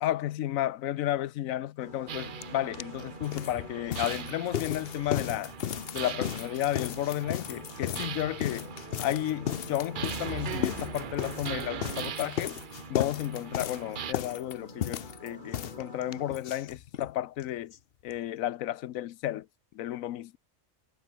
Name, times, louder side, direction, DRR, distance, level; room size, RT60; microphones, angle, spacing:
voice 1, 0.0-5.5 5.9-8.7 9.0-12.6 12.9-17.7 18.0-19.5 19.7-20.4, left 13 dB, 85° left, 1.1 m, -32 dB
sound 1, 1.8-16.4, left 1 dB, 35° left, 7.8 m, -48 dB
sound 2, 2.1-14.1, right 9 dB, 50° right, 0.7 m, -41 dB
sound 3, 2.4-2.5 2.7-17.1 17.4-17.5 17.7-17.8 18.1-18.2, left 10 dB, 55° left, 0.8 m, -35 dB
omnidirectional pair, 1.4 m